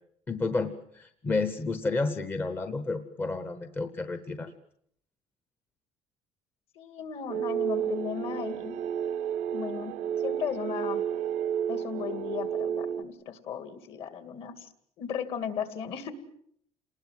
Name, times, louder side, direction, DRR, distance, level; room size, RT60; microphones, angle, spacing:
voice 1, 0.3-4.5, left 3 dB, 15° left, 10 dB, 0.9 m, -31 dB
voice 2, 6.8-8.8 9.5-10.0 10.2-11.0 11.7-14.7 15.0-16.1, left 7 dB, 50° left, 11 dB, 2.5 m, -36 dB
sound 1, 7.3-13.0, right 9 dB, 85° right, 1.2 m, -31 dB
29.0 x 20.0 x 7.6 m, 0.66 s
cardioid pair, 170°, 12 cm